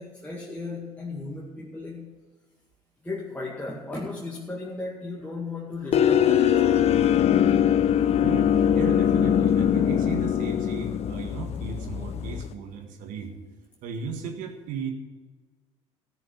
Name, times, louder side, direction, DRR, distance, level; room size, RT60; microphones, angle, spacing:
voice 1, 0.0-2.3 3.0-6.9, left 3 dB, 10° left, -4 dB, 2.1 m, -36 dB
sound 1, 5.9-12.5, left 9 dB, 45° left, 0.7 m, -22 dB
voice 2, 8.2-13.4 13.8-14.9, right 6 dB, 65° right, 4 dB, 1.8 m, -36 dB
13.5 x 6.5 x 9.6 m, 1.3 s
hypercardioid pair, 60°, 14 cm